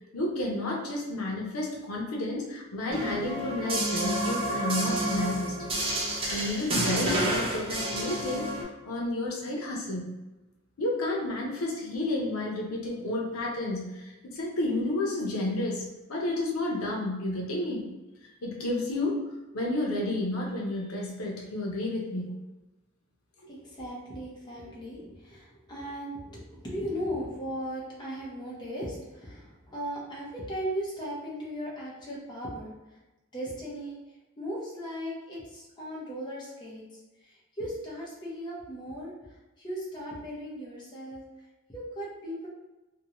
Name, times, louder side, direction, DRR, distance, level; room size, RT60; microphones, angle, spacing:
voice 1, 0.1-5.7 6.3-8.5 8.8-10.1 10.8-17.9 18.4-19.2 19.5-22.3 23.4-23.5, left 1 dB, 90° left, -1 dB, 0.6 m, -31 dB
sound 1, 2.9-8.6, right 1 dB, 25° right, 0.5 m, -30 dB
voice 2, 23.5-33.0 33.3-34.0 34.4-42.5, equal, 20° left, -5 dB, 0.7 m, -37 dB
2.6 x 2.1 x 2.9 m, 1.0 s
head